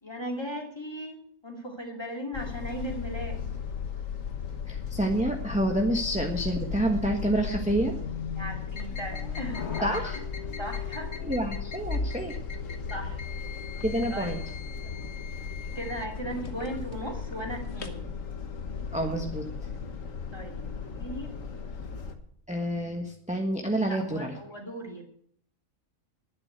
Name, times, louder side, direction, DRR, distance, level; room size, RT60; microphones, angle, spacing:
voice 1, 0.0-3.6 8.3-10.1 10.4-11.1 12.9-13.2 14.1-14.5 15.7-18.1 20.3-21.4 23.9-25.0, equal, 20° left, 1 dB, 2.6 m, -37 dB
sound 1, 2.3-22.2, left 6 dB, 80° left, 1.7 m, -36 dB
voice 2, 4.7-7.9 9.8-10.2 11.2-12.4 13.8-14.4 18.9-19.4 22.5-24.3, right 1 dB, 5° right, 2 dB, 1.3 m, -28 dB
sound 2, 8.7-18.0, left 6 dB, 55° left, 1.6 m, -44 dB
11.5 x 9.6 x 8.1 m, 0.65 s
omnidirectional pair, 1.4 m